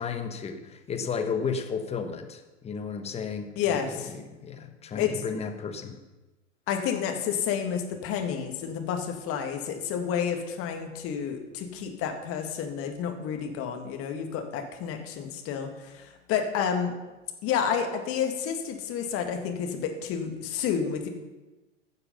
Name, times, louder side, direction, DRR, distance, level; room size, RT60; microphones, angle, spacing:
voice 1, 0.0-6.0, left 5 dB, 15° left, 7 dB, 1.2 m, -33 dB
voice 2, 3.6-4.1 5.0-5.1 6.7-16.9 17.4-21.1, left 7 dB, 35° left, 4 dB, 2.0 m, -30 dB
15.5 x 6.7 x 5.7 m, 1.1 s
hypercardioid pair, 105°, 38 cm